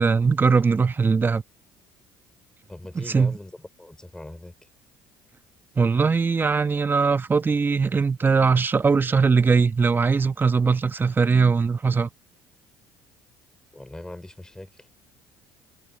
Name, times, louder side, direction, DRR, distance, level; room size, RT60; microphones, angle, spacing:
voice 1, 0.0-1.4 2.9-3.4 5.8-12.1, right 5 dB, 25° right, 1.5 m, -20 dB
voice 2, 2.7-3.5 3.8-4.5 13.7-15.0, left 1 dB, 10° left, 5.0 m, -40 dB
hypercardioid pair, 65°, 8 cm